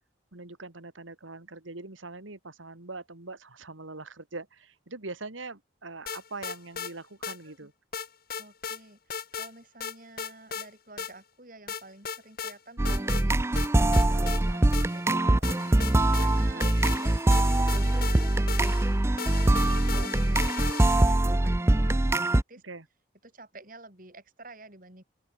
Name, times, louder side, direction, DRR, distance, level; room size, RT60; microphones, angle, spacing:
voice 1, 0.3-7.7 16.5-16.7 22.6-22.8, right 3 dB, 90° right, 2.4 m, -42 dB
sound 1, 6.1-6.9 7.2-7.4 7.9-8.8 9.1-9.5 9.8-10.7 11.0-11.1 11.7-12.5 12.8-13.3 13.6-15.1 15.4-21.2, left 6 dB, 50° left, 1.6 m, -37 dB
voice 2, 8.4-15.7 16.1-22.6 23.2-25.0, right 2 dB, 45° right, 6.6 m, -50 dB
sound 2, 12.8-22.4, right 1 dB, 15° right, 0.4 m, -23 dB
open air
head